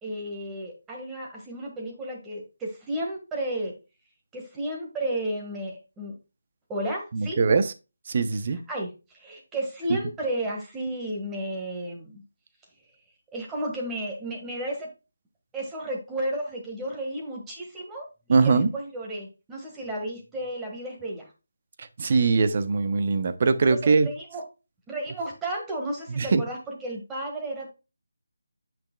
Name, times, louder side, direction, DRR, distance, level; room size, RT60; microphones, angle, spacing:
voice 1, 0.0-3.8 4.3-6.2 6.7-7.4 8.7-12.2 13.3-14.9 15.5-21.3 23.7-24.4 24.9-27.7, right 1 dB, 10° right, 1.7 m, -33 dB
voice 2, 7.1-7.7 8.1-8.6 18.3-18.7 21.8-24.1 26.1-26.4, right 4 dB, 40° right, 0.8 m, -22 dB
8.5 x 6.1 x 2.3 m
figure-of-eight pair, 165°, 0 cm